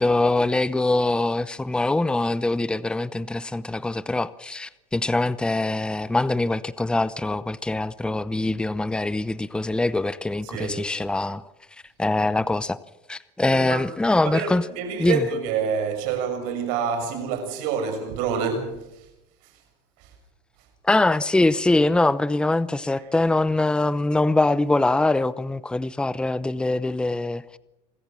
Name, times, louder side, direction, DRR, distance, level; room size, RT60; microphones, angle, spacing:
voice 1, 0.0-11.4 12.0-12.8 13.1-14.6 15.0-15.2 20.8-27.6, left 2 dB, 5° left, 0.8 m, -23 dB
voice 2, 10.4-10.9 13.4-13.8 14.2-19.1 19.4-19.6 20.0-20.1 20.6-20.7 23.0-23.1, right 6 dB, 75° right, 6.4 m, -28 dB
26.5 x 14.0 x 7.5 m
supercardioid pair, 120°, 14 cm